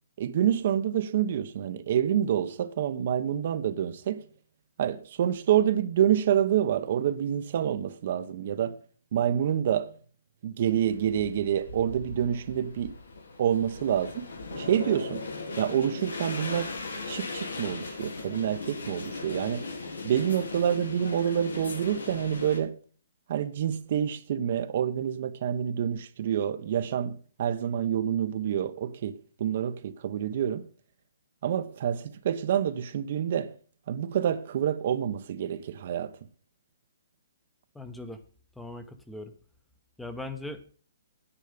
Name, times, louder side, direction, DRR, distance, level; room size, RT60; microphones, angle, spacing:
voice 1, 0.2-4.3 4.8-8.8 9.1-10.0 10.4-13.0 13.4-14.3 14.6-15.3 15.6-16.7 17.1-19.7 20.0-22.8 23.3-30.7 31.4-33.6 33.9-36.2, right 9 dB, 50° right, 0.9 m, -27 dB
sound 1, 10.7-22.6, left 3 dB, 90° left, 4.3 m, -38 dB
voice 2, 37.7-38.2 38.6-39.3 40.0-40.7, left 2 dB, 5° left, 1.0 m, -39 dB
9.9 x 9.2 x 5.0 m
hypercardioid pair, 145°, 0 cm